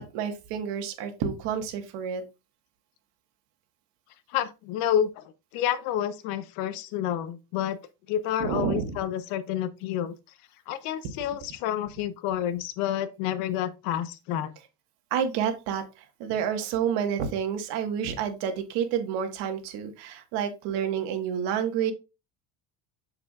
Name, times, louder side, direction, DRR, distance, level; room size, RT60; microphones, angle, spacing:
voice 1, 0.0-2.2 8.4-9.0 15.1-15.8 16.2-21.9, right 8 dB, 70° right, 1.5 m, -29 dB
voice 2, 4.3-5.2 5.5-7.8 8.1-10.1 10.7-14.5, left 10 dB, 85° left, 0.9 m, -29 dB
6.8 x 6.8 x 2.4 m
cardioid pair, 160°, 42 cm